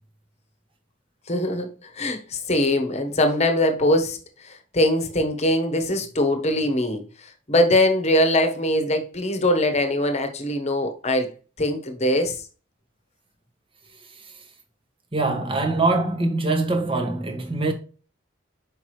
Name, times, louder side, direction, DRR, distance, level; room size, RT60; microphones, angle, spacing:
voice 1, 1.3-11.3 11.6-12.4, left 1 dB, 35° left, 1.1 m, -22 dB
voice 2, 15.1-17.7, right 2 dB, 25° right, 1.1 m, -23 dB
6.0 x 5.2 x 3.1 m
head